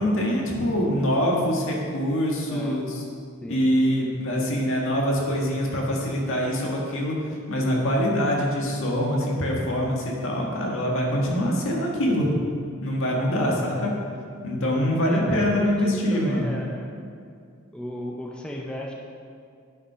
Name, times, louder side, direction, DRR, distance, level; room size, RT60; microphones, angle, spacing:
voice 1, 0.0-3.0 3.5-7.2 7.5-12.3 12.8-13.9 14.4-16.5, equal, 65° left, -2 dB, 1.7 m, -24 dB
voice 2, 2.5-2.8 3.4-3.6 13.4-13.8 15.0-16.9 17.7-18.9, left 1 dB, 5° left, -1 dB, 0.6 m, -35 dB
9.8 x 5.7 x 5.6 m, 2.3 s
head